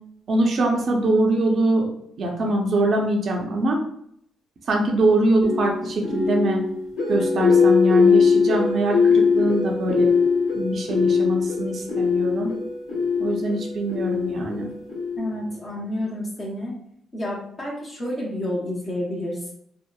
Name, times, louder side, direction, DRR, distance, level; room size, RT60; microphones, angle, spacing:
voice 1, 0.3-1.9 2.2-3.8 4.7-6.6 7.1-10.1 10.5-12.5 13.2-14.7, right 1 dB, 55° right, 0 dB, 0.5 m, -23 dB
sound 1, 5.4-15.5, left 5 dB, 85° left, 1.1 m, -21 dB
voice 2, 15.2-16.8 17.1-19.5, left 1 dB, 35° left, -4 dB, 0.7 m, -29 dB
2.7 x 2.0 x 2.2 m, 0.69 s
cardioid pair, 90°, 0 cm